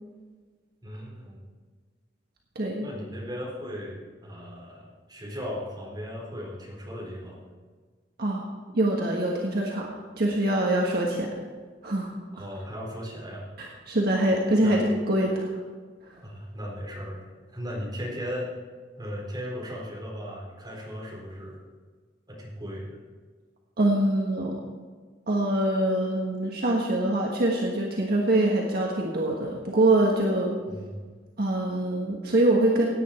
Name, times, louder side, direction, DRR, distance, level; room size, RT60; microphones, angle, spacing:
voice 1, 0.8-1.4 2.8-7.5 12.3-13.5 14.6-14.8 16.2-17.2 17.5-18.5 19.0-21.6 22.3-23.0 30.7-31.0, equal, 25° right, -4 dB, 4.1 m, -37 dB
voice 2, 2.5-2.9 8.2-8.5 8.7-9.9 10.2-11.3 11.8-12.1 13.6-15.5 23.8-24.6 25.3-30.5 31.4-32.9, right 1 dB, 60° right, -1 dB, 1.5 m, -24 dB
17.5 x 9.3 x 4.4 m, 1.5 s
head